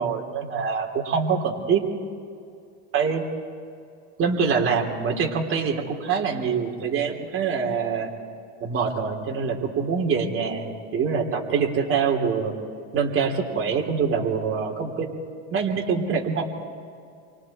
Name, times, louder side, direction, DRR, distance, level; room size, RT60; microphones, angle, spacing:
voice 1, 0.0-1.8 2.9-3.2 4.2-8.1 8.6-12.5 12.9-15.1 15.5-16.4, right 6 dB, 40° right, 1 dB, 3.4 m, -25 dB
29.0 x 24.0 x 4.4 m, 2.4 s
supercardioid pair, 120°, 33 cm